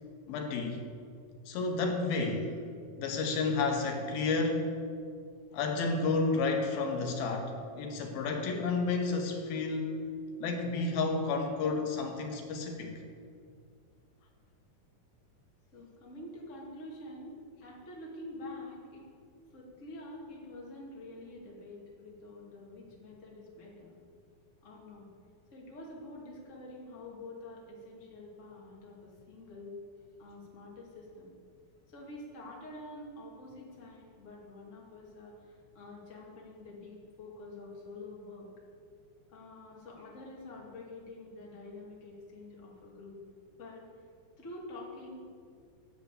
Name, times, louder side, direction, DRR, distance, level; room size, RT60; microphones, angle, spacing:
voice 1, 0.3-0.8 1.5-2.6 3.0-4.7 5.5-10.0 10.4-13.0, left 3 dB, 85° left, 3 dB, 3.1 m, -31 dB
voice 2, 15.7-17.3 17.6-19.1 19.5-24.0 24.6-25.1 25.5-29.8 30.2-31.3 31.9-38.5 39.3-43.2 43.6-43.8 44.4-45.2, left 2 dB, 25° left, -3 dB, 2.1 m, -47 dB
10.5 x 8.1 x 8.3 m, 2.3 s
omnidirectional pair, 4.2 m